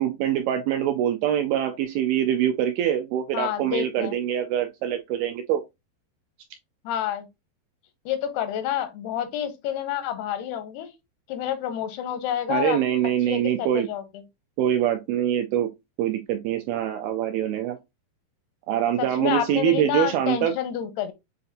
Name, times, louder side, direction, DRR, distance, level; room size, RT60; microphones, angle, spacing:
voice 1, 0.0-5.6 12.5-13.9 14.6-15.7 16.0-17.8 18.7-20.5, right 10 dB, 85° right, 2.1 m, -24 dB
voice 2, 3.3-4.2 6.8-7.3 8.1-10.9 11.3-12.8 13.3-14.0 19.0-21.1, left 10 dB, 85° left, 2.6 m, -28 dB
7.7 x 2.7 x 2.4 m
omnidirectional pair, 4.7 m